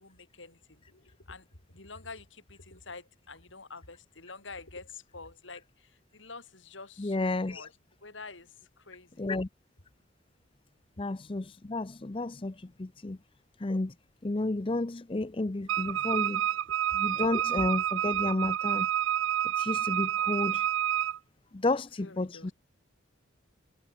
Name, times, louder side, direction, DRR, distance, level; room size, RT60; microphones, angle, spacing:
voice 1, 0.0-7.7 8.0-9.3 16.9-17.0 22.0-22.5, left 3 dB, 85° left, 4.3 m, -48 dB
voice 2, 7.0-7.7 9.2-9.5 11.0-13.2 13.6-13.9 14.2-16.4 16.9-18.9 19.6-20.7 21.5-22.5, left 2 dB, 25° left, 0.5 m, -31 dB
Wind instrument woodwind instrument, 15.7-21.2, right 10 dB, 90° right, 0.3 m, -29 dB
head